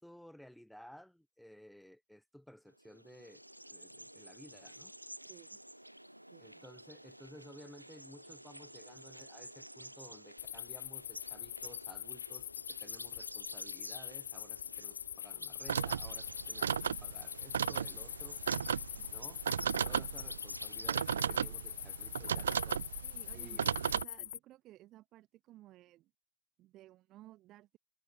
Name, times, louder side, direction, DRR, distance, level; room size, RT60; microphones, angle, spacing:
voice 1, 0.0-3.4 3.7-4.9 6.4-19.4 19.8-22.9 23.3-23.8, equal, ahead, 3.2 m, -56 dB
sound 1, 2.8-21.0, right 1 dB, 90° right, 1.6 m, -51 dB
voice 2, 5.2-5.6 6.3-6.7 23.0-26.1 26.6-27.8, right 15 dB, 35° right, 4.1 m, -57 dB
sound 2, 10.4-24.4, left 13 dB, 60° left, 1.3 m, -44 dB
sound 3, 15.7-24.0, right 8 dB, 65° right, 0.9 m, -35 dB
figure-of-eight pair, 90°, 0 cm